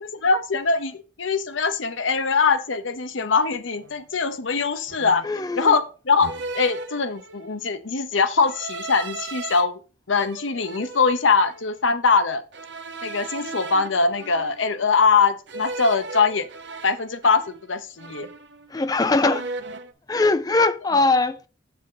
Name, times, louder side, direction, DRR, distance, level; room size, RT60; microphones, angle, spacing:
voice 1, 0.0-5.2 5.5-6.3 6.5-9.8 10.1-12.4 13.0-16.5 16.8-18.3, left 4 dB, 85° left, 0.9 m, -22 dB
sound 1, 3.8-4.0 4.9-5.4 6.2-7.6 8.4-9.6 10.2-11.7 12.5-14.9 15.5-17.7 18.0-18.7 19.0-19.9, right 3 dB, 65° right, 0.9 m, -36 dB
voice 2, 5.2-5.8 18.7-19.5 20.1-21.5, left 3 dB, 20° left, 0.4 m, -21 dB
7.3 x 7.1 x 3.9 m
head